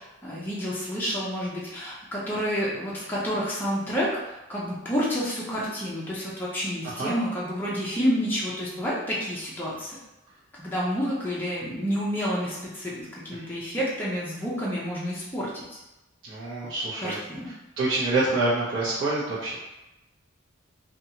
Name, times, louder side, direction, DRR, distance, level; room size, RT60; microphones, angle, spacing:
voice 1, 0.0-10.0 10.6-15.8 17.0-17.5, equal, 10° left, -7 dB, 0.5 m, -29 dB
voice 2, 16.3-17.2 17.8-19.5, right 2 dB, 60° right, -10 dB, 0.7 m, -26 dB
2.7 x 2.3 x 2.7 m, 1.0 s
head